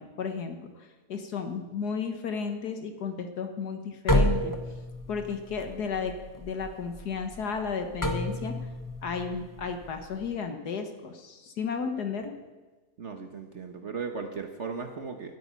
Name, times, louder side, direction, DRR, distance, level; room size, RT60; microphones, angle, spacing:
voice 1, 0.0-4.5 5.1-8.5 9.0-12.3, left 5 dB, 75° left, 6 dB, 1.9 m, -33 dB
sound 1, 4.1-10.3, left 1 dB, 15° left, 1.1 m, -30 dB
voice 2, 13.0-15.4, right 5 dB, 50° right, 5 dB, 1.3 m, -37 dB
13.0 x 10.5 x 9.4 m, 1.2 s
omnidirectional pair, 1.7 m